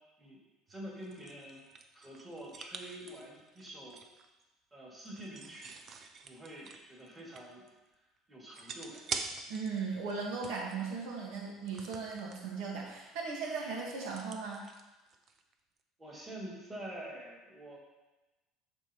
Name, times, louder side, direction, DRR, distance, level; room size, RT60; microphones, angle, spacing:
voice 1, 0.7-1.6 1.9-4.0 4.7-5.7 6.2-7.6 8.3-9.1 16.0-17.8, right 1 dB, 15° right, -5 dB, 2.6 m, -46 dB
sound 1, 0.7-4.3 5.0-7.7 7.9-8.0 8.5-9.8 10.1-10.9 11.6-12.4 12.9-13.1 13.4-15.5, right 5 dB, 40° right, 0.6 m, -46 dB
voice 2, 9.5-14.6, right 4 dB, 80° right, -2 dB, 1.6 m, -37 dB
13.0 x 4.5 x 3.1 m, 1.1 s
cardioid pair, 130°, 0 cm